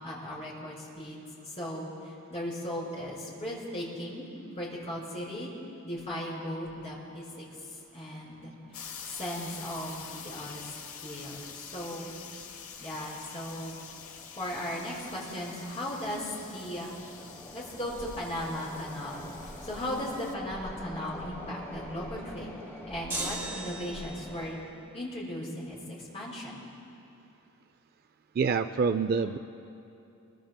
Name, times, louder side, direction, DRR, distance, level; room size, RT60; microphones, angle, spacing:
voice 1, 0.0-4.3 4.6-5.5 5.8-8.5 9.0-10.7 11.0-12.2 12.8-13.7 14.3-16.9 17.5-19.3 19.6-22.6 22.9-24.6 24.9-26.6 29.2-29.3, left 1 dB, 30° left, -6 dB, 4.6 m, -37 dB
sound 1, 7.8-7.9 8.1-8.2 9.0-9.2 9.5-9.6 10.2-10.6 11.0-24.7, left 1 dB, 10° left, 2.2 m, -47 dB
sound 2, 8.7-20.3, left 6 dB, 80° left, 1.0 m, -46 dB
sound 3, 23.1-24.4, right 2 dB, 10° right, 3.0 m, -36 dB
voice 2, 28.3-29.4, right 5 dB, 45° right, 11 dB, 0.3 m, -26 dB
25.5 x 22.5 x 2.2 m, 2.7 s
head